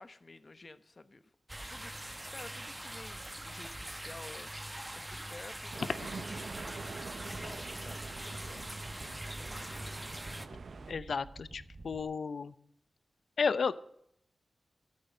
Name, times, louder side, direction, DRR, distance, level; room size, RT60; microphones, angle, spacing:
voice 1, 0.0-1.3 1.7-6.0 6.3-6.9 7.2-8.9 9.7-10.0, left 3 dB, 40° left, 12 dB, 1.0 m, -52 dB
sound 1, 1.5-10.5, right 1 dB, 10° right, 0.9 m, -43 dB
sound 2, 5.7-10.9, right 4 dB, 75° right, 0.7 m, -46 dB
sound 3, 6.3-12.0, right 2 dB, 50° right, 1.3 m, -50 dB
voice 2, 10.9-12.5 13.4-13.7, left 5 dB, 75° left, 16 dB, 0.7 m, -32 dB
14.0 x 8.7 x 7.7 m, 0.72 s
wide cardioid pair, 85°, 0 cm